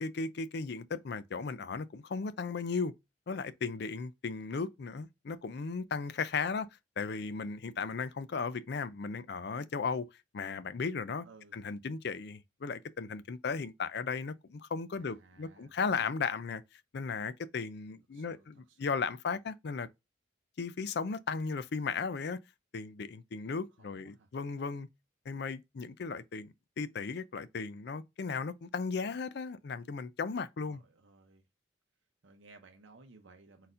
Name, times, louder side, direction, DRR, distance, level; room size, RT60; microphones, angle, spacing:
voice 1, 0.0-2.9 3.3-6.7 7.0-10.1 10.3-11.3 11.5-19.9 20.6-22.4 22.7-24.9 25.3-30.8, left 5 dB, 60° left, 0.5 m, -36 dB
voice 2, 11.2-11.5 15.0-15.7 18.1-19.0 23.6-24.3 30.6-31.5 32.2-33.7, right 3 dB, 80° right, 0.7 m, -59 dB
4.1 x 4.0 x 2.5 m
head